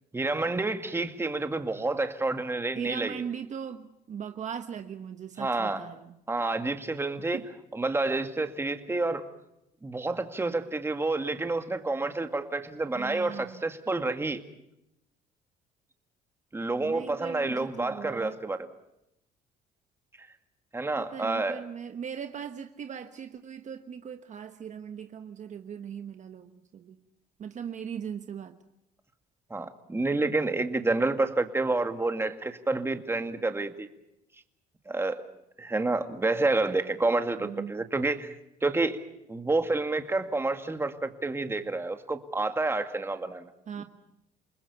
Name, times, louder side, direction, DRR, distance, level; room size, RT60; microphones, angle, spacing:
voice 1, 0.1-3.2 5.4-5.9 6.3-7.4 7.7-9.3 9.8-14.4 16.5-18.7 20.7-21.6 29.5-33.9 34.9-35.3 35.6-38.4 38.6-39.0 39.3-43.5 43.8-43.9, right 2 dB, 15° right, 7 dB, 2.1 m, -29 dB
voice 2, 2.7-6.2 7.3-7.4 12.9-13.6 16.8-18.4 21.0-27.0 27.4-28.6 37.4-37.7 43.7-43.8, right 7 dB, 45° right, 8 dB, 1.3 m, -39 dB
29.0 x 20.5 x 7.0 m, 0.83 s
cardioid pair, 110°, 17 cm